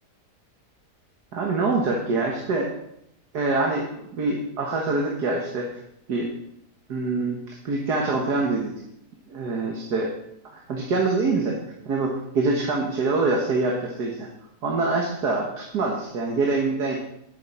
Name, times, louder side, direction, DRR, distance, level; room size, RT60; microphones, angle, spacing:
voice 1, 1.3-2.7 3.3-3.9 4.1-5.7 6.1-6.3 6.9-8.7 9.3-10.1 10.5-11.6 11.9-14.3 14.6-16.9, right 3 dB, 75° right, 0 dB, 2.0 m, -25 dB
10.5 x 9.2 x 4.3 m, 0.78 s
omnidirectional pair, 1.8 m